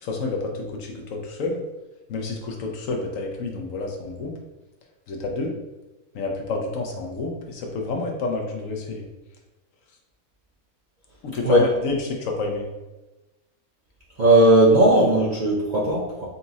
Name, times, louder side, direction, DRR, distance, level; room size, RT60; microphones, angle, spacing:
voice 1, 0.0-1.6 2.1-4.3 5.1-5.5 6.1-9.0 11.2-12.7, left 3 dB, 65° left, 1 dB, 1.0 m, -29 dB
voice 2, 14.2-16.3, right 1 dB, 50° right, -5 dB, 0.6 m, -17 dB
4.0 x 2.4 x 3.9 m, 1.1 s
omnidirectional pair, 1.6 m